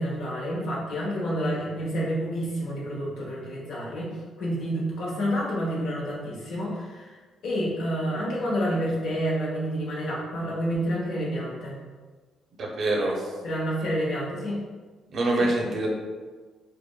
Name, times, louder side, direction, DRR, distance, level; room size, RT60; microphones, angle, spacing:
voice 1, 0.0-7.2 7.4-11.8 13.4-14.6 15.4-15.5, equal, 75° left, -4 dB, 1.1 m, -29 dB
voice 2, 12.6-13.2 15.1-15.9, right 2 dB, 55° right, 0 dB, 0.7 m, -25 dB
4.9 x 2.2 x 2.3 m, 1.4 s
cardioid pair, 90°, 0 cm